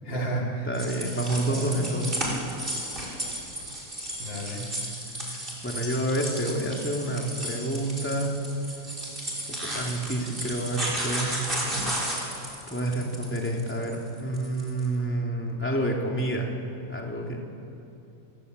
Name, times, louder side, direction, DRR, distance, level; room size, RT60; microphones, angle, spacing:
voice 1, 0.0-0.7 1.5-1.9 4.2-4.9, right 1 dB, 75° left, -2 dB, 5.2 m, -32 dB
voice 2, 0.7-2.2 5.3-8.3 9.6-11.4 12.7-16.5 16.9-17.4, right 1 dB, 5° left, -1 dB, 3.3 m, -29 dB
sound 1, 0.7-14.9, right 1 dB, 25° right, 6.1 m, -34 dB
29.0 x 22.5 x 8.5 m, 2.7 s
omnidirectional pair, 2.0 m